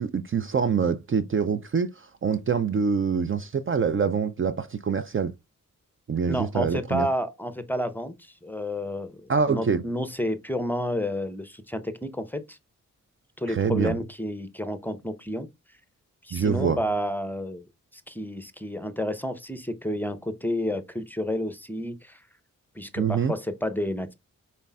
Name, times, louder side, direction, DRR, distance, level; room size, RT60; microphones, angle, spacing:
voice 1, 0.0-5.3 6.1-7.1 9.3-9.8 13.5-13.9 16.3-16.8 23.0-23.3, right 6 dB, 40° right, 0.5 m, -25 dB
voice 2, 6.3-12.6 13.4-15.5 16.2-17.6 17.9-22.2 22.8-24.1, equal, 5° left, 0.7 m, -30 dB
5.3 x 4.2 x 2.3 m
cardioid pair, 60°, 33 cm